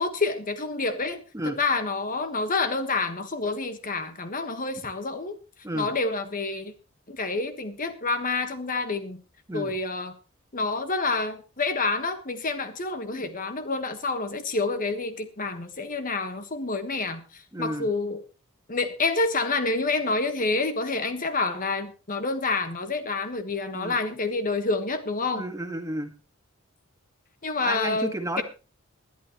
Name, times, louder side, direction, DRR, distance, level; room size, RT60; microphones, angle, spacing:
voice 1, 0.0-1.2 1.4-5.4 5.7-6.7 7.1-9.2 9.5-10.1 10.5-18.2 18.7-25.4 27.4-28.4, left 3 dB, 40° left, 8 dB, 1.4 m, -28 dB
voice 2, 17.5-17.9 23.7-24.0 25.3-26.1 27.6-28.4, right 1 dB, 15° right, 5 dB, 1.8 m, -32 dB
20.5 x 11.5 x 3.1 m, 0.32 s
head